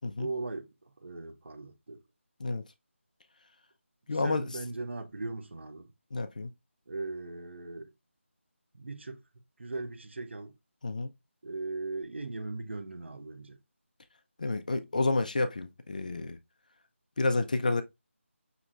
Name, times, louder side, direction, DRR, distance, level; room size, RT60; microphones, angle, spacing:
voice 1, 0.2-2.0 4.1-5.9 6.9-7.9 8.7-9.2 9.6-10.6 11.4-13.6, right 3 dB, 60° right, 0.8 m, -39 dB
voice 2, 4.1-4.4 6.1-6.5 10.8-11.1 14.4-16.4 17.2-17.8, left 3 dB, 35° left, 0.4 m, -29 dB
5.8 x 3.0 x 2.4 m
figure-of-eight pair, 170°, 7 cm